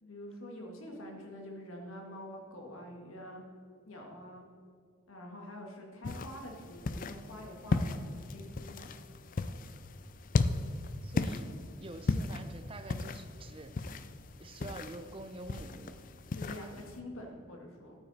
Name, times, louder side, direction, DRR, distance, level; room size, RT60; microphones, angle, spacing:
voice 1, 0.0-3.4 3.9-4.4 5.1-8.9 16.3-18.0, left 1 dB, 80° left, 1 dB, 1.9 m, -46 dB
sound 1, 6.0-17.0, left 3 dB, 40° left, 0.4 m, -36 dB
voice 2, 11.0-11.5 11.8-13.9 14.4-16.0 16.5-16.9, right 2 dB, 25° right, 9 dB, 0.5 m, -47 dB
11.5 x 8.8 x 4.2 m, 2.3 s
head